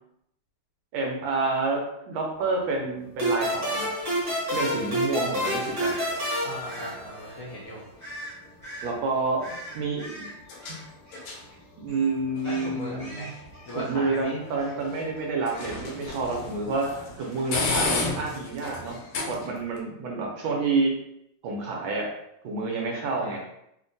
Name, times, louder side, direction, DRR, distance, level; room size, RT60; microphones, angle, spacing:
voice 1, 0.9-3.9 4.5-5.9 8.8-10.3 10.7-10.8 11.8-13.4 13.7-16.9 17.2-19.0 19.3-20.9 21.4-22.1 22.4-23.4, right 3 dB, 75° right, 0 dB, 1.3 m, -28 dB
sound 1, 2.3-19.8, left 3 dB, 85° left, 1.5 m, -37 dB
sound 2, 3.2-7.6, equal, 40° right, 1.3 m, -28 dB
sound 3, 5.7-6.1 6.7-7.0 8.0-8.3 8.6-8.9 9.4-11.6 11.9-12.1 12.4-14.3 14.6-14.8 15.1-16.1, equal, 30° left, 0.6 m, -42 dB
voice 2, 6.4-7.8 12.4-13.3 13.7-14.4 16.8-16.9 23.2-23.4, equal, 70° left, -8 dB, 0.9 m, -38 dB
3.6 x 2.1 x 2.6 m, 0.78 s
omnidirectional pair, 2.4 m